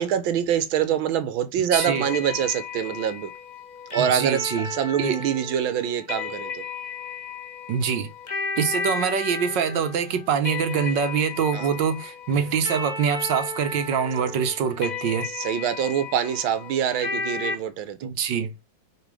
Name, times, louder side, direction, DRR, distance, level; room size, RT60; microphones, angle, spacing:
voice 1, 0.0-3.3 3.9-6.6 11.5-11.7 15.3-18.1, right 9 dB, 90° right, 1.7 m, -25 dB
sound 1, 1.7-17.6, left 4 dB, 30° left, 0.9 m, -34 dB
voice 2, 1.7-2.1 4.0-4.7 5.0-5.2 7.7-8.1 8.6-15.3 18.0-18.5, right 7 dB, 70° right, 1.4 m, -24 dB
6.8 x 3.9 x 4.8 m
omnidirectional pair, 2.2 m